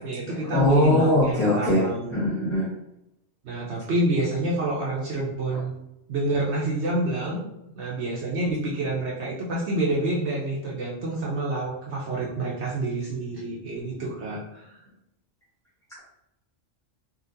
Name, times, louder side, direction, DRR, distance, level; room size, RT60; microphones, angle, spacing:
voice 1, 0.0-2.2 3.4-5.7 6.1-7.4 7.7-14.8, right 2 dB, 70° right, -5 dB, 1.0 m, -28 dB
voice 2, 0.5-1.8 2.1-2.7, left 1 dB, 5° left, -10 dB, 0.9 m, -21 dB
3.8 x 2.5 x 2.6 m, 0.86 s
omnidirectional pair, 1.3 m